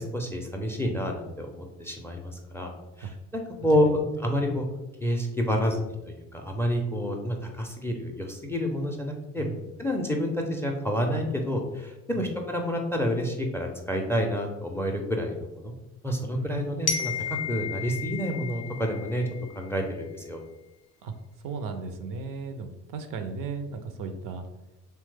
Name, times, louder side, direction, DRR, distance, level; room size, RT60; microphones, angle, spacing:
voice 1, 0.0-2.7 3.0-4.6 5.0-5.8 6.3-9.5 9.8-15.7 16.0-17.1 17.5-19.2 19.6-19.8 20.1-20.4, equal, 5° left, 3 dB, 0.4 m, -28 dB
voice 2, 9.4-9.7 12.1-12.2 16.3-16.9 21.0-21.1 21.4-24.4, right 5 dB, 55° right, 8 dB, 0.5 m, -36 dB
Glockenspiel, 16.9-19.7, left 6 dB, 85° left, 0.5 m, -33 dB
2.9 x 2.2 x 3.2 m, 1.0 s
hypercardioid pair, 50°, 40 cm